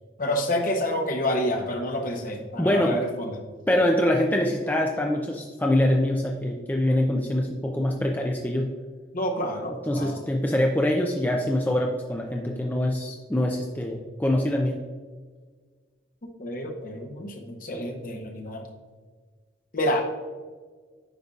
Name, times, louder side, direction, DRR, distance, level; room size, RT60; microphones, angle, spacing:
voice 1, 0.2-3.4 9.1-10.2 16.4-18.6 19.7-20.0, left 1 dB, 45° left, 3 dB, 0.8 m, -28 dB
voice 2, 2.6-3.0 3.7-8.7 9.9-14.8, left 1 dB, 10° left, 0 dB, 0.4 m, -24 dB
9.2 x 5.4 x 2.4 m, 1.5 s
head